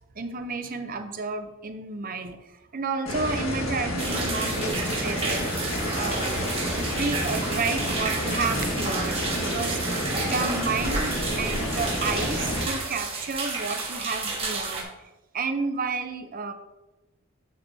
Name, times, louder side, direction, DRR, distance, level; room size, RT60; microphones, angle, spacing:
voice 1, 0.1-14.9 15.3-16.5, right 4 dB, 45° right, 8 dB, 0.6 m, -31 dB
sound 1, 3.1-12.7, left 1 dB, 80° left, 1.7 m, -29 dB
sound 2, 4.0-14.8, right 3 dB, 30° right, 1.5 m, -32 dB
8.8 x 6.8 x 2.7 m, 1.0 s
head